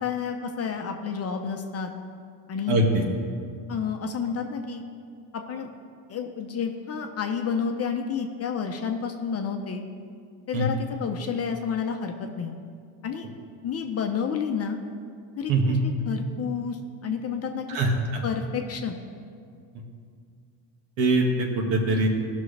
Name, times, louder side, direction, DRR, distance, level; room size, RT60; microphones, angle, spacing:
voice 1, 0.0-1.9 2.5-2.8 3.7-4.8 5.3-5.7 6.1-9.8 10.5-12.6 13.0-13.3 13.6-14.8 15.4-15.8 16.0-17.7 18.2-19.0, left 6 dB, 30° left, 4 dB, 0.8 m, -30 dB
voice 2, 2.7-3.0 10.5-10.6 15.5-15.8 17.7-17.9 21.0-22.1, right 2 dB, 65° right, 1 dB, 1.9 m, -22 dB
16.0 x 6.3 x 3.4 m, 2.2 s
supercardioid pair, 115°, 47 cm